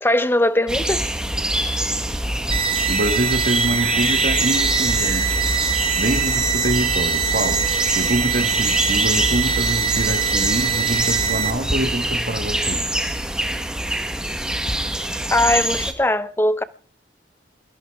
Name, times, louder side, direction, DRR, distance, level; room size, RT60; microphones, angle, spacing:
voice 1, 0.0-1.0 15.3-16.6, left 1 dB, 10° left, 0.7 m, -20 dB
sound 1, 0.7-15.9, right 1 dB, 5° right, 1.3 m, -24 dB
sound 2, 2.5-11.5, right 7 dB, 30° right, 1.8 m, -23 dB
voice 2, 2.9-5.4 6.0-7.7 7.9-12.9, right 1 dB, 50° right, 1.5 m, -25 dB
22.0 x 14.5 x 3.5 m
head